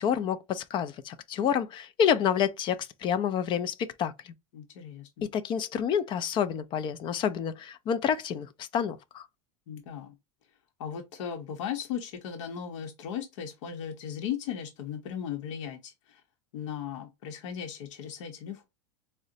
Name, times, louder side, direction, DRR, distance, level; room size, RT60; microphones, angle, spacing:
voice 1, 0.0-4.1 5.3-9.3, left 8 dB, 30° left, 0.3 m, -28 dB
voice 2, 4.5-5.3 9.7-10.2 10.8-16.2 16.5-18.7, left 8 dB, 75° left, 0.8 m, -37 dB
3.8 x 2.1 x 2.6 m
supercardioid pair, 130°, 16 cm